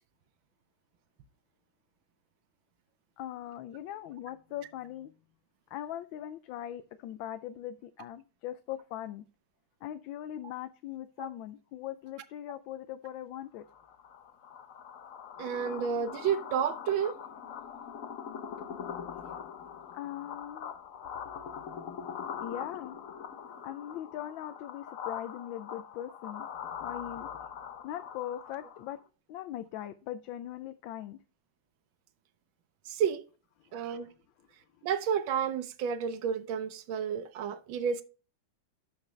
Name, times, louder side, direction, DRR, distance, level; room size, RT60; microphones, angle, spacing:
voice 1, 3.2-5.1 5.7-9.2 9.8-13.6 19.9-20.7 22.4-23.0 23.6-26.5 26.8-27.3 27.8-29.0 29.3-31.2 33.7-33.8, left 12 dB, 85° left, 1.4 m, -40 dB
sound 1, 13.7-29.0, left 7 dB, 60° left, 1.0 m, -42 dB
voice 2, 15.4-17.2 32.8-33.2 33.7-34.1 34.8-38.0, right 7 dB, 85° right, 1.6 m, -31 dB
12.0 x 5.1 x 3.2 m
omnidirectional pair, 2.1 m